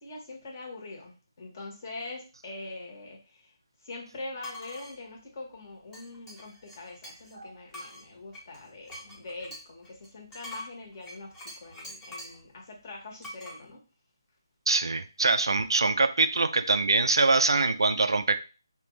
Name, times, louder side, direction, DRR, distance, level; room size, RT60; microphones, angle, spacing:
voice 1, 0.0-3.5 3.8-13.8, left 2 dB, 40° left, 0 dB, 1.5 m, -43 dB
sound 1, 4.4-4.9 5.9-7.3 7.7-12.4 13.2-13.6, left 1 dB, 10° left, 1.0 m, -44 dB
voice 2, 14.7-18.4, right 3 dB, 70° right, 10 dB, 0.4 m, -24 dB
5.3 x 2.5 x 3.2 m, 0.34 s
figure-of-eight pair, 155°, 2 cm